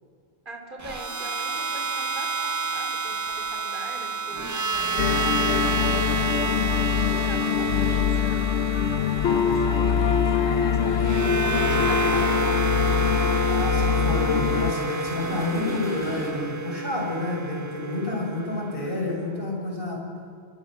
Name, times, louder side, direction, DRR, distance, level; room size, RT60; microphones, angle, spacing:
voice 1, 0.5-6.3 6.9-8.5 9.2-11.2 11.6-12.6, right 2 dB, 50° right, 2 dB, 3.6 m, -42 dB
sound 1, 0.8-19.0, right 3 dB, 25° right, 0.4 m, -29 dB
sound 2, 3.3-3.4 4.8-16.3, equal, 5° left, 7.4 m, -43 dB
sound 3, 5.0-14.7, left 7 dB, 85° left, 1.0 m, -23 dB
voice 2, 13.5-20.0, left 2 dB, 55° left, 0 dB, 6.1 m, -29 dB
27.5 x 23.5 x 6.3 m, 2.4 s
omnidirectional pair, 1.1 m